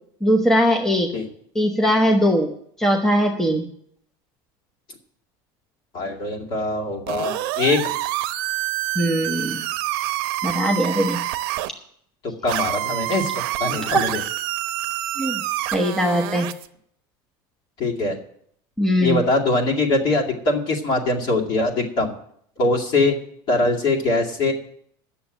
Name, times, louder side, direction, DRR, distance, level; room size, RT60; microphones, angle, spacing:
voice 1, 0.2-1.1 1.5-2.5 2.8-3.7 9.0-9.6 10.4-11.2 13.8-14.0 15.2-15.4 15.7-16.5 18.8-19.2, equal, 5° left, 2 dB, 0.9 m, -20 dB
voice 2, 5.9-7.9 12.2-14.2 17.8-18.2 19.0-22.1 22.6-23.1 23.5-24.5, left 2 dB, 40° left, 0 dB, 2.3 m, -22 dB
sound 1, 7.1-11.7 12.5-16.7, right 15 dB, 75° right, 0.7 m, -27 dB
9.4 x 7.1 x 8.9 m, 0.67 s
cardioid pair, 155°, 12 cm